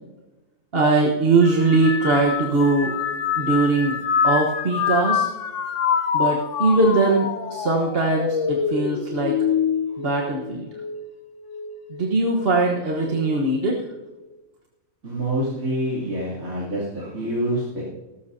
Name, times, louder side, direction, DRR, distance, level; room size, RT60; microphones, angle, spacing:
voice 1, 0.7-2.9 3.3-5.3 6.1-9.4 10.0-10.7 11.9-13.8, right 3 dB, 45° right, -1 dB, 1.4 m, -21 dB
sound 1, 1.4-11.0 11.5-12.1 13.0-13.4, left 7 dB, 65° left, 1.2 m, -26 dB
voice 2, 15.0-17.8, right 1 dB, 85° right, -9 dB, 3.4 m, -26 dB
17.5 x 14.5 x 2.7 m, 1.1 s
omnidirectional pair, 1.4 m